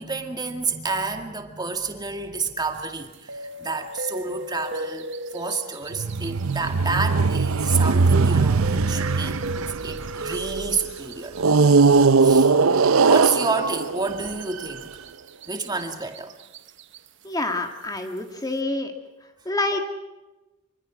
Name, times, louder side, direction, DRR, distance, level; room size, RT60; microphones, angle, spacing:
voice 1, 0.0-9.4 9.8-11.4 12.2-12.5 13.0-14.9 15.5-16.4, right 4 dB, 20° right, 5 dB, 2.1 m, -29 dB
sound 1, 2.7-8.1 8.5-12.8 13.0-13.1 13.6-17.2 17.8-18.2, right 1 dB, 60° right, 1.1 m, -37 dB
sound 2, 5.9-10.6 11.4-14.8, right 4 dB, 85° right, 0.7 m, -20 dB
voice 2, 17.2-18.9 19.5-19.8, left 2 dB, 20° left, 5 dB, 1.9 m, -27 dB
25.5 x 24.5 x 6.2 m, 1.1 s
head